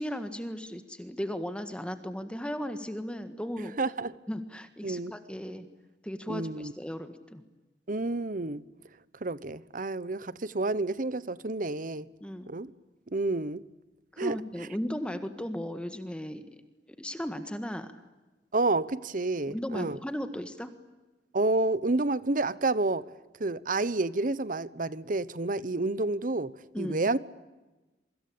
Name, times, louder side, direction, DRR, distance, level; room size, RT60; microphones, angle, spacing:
voice 1, 0.0-3.7 4.3-5.7 6.0-7.4 12.2-12.5 14.1-16.4 17.0-18.0 19.5-20.7 26.7-27.0, equal, 5° left, 1.6 m, -36 dB
voice 2, 3.8-4.2 4.8-5.1 6.3-6.7 7.9-8.6 9.2-12.1 12.5-12.7 13.1-13.6 14.2-14.7 18.5-20.0 21.3-23.0 23.4-26.5 26.8-27.2, right 2 dB, 50° right, 1.0 m, -29 dB
27.5 x 24.5 x 8.6 m
head